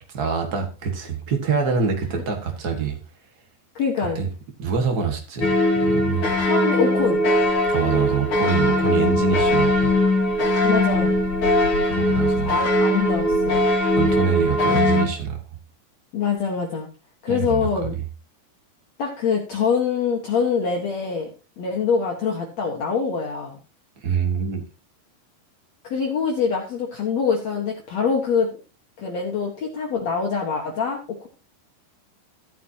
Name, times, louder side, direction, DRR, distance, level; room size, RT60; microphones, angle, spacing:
voice 1, 0.1-3.0 4.1-4.3 4.6-5.5 5.8-6.3 7.7-9.9 11.8-12.6 14.0-15.4 17.3-18.0 24.0-24.6, right 6 dB, 85° right, 0.8 m, -25 dB
voice 2, 3.8-4.2 6.4-7.2 10.6-11.2 12.4-13.6 16.1-16.9 17.2-18.0 19.0-21.3 21.6-23.6 25.8-28.5 29.0-31.3, left 5 dB, 55° left, 2.1 m, -24 dB
sound 1, 5.4-15.1, left 1 dB, 40° left, 2.3 m, -20 dB
14.5 x 9.4 x 2.8 m
omnidirectional pair, 4.7 m